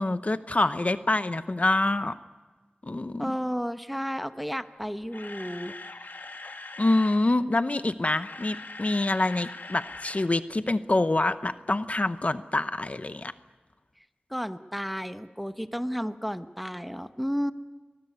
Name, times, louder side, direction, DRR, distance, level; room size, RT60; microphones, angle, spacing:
voice 1, 0.0-2.2 2.8-3.3 6.8-13.3, left 2 dB, 45° left, 12 dB, 0.8 m, -26 dB
voice 2, 3.2-5.7 14.3-17.5, equal, ahead, 10 dB, 1.1 m, -32 dB
Camera, 4.8-7.2 8.0-10.3 10.5-10.7 11.2-11.3, left 3 dB, 75° left, 1.8 m, -42 dB
23.0 x 19.5 x 9.5 m, 1.3 s
wide cardioid pair, 45°, 3 cm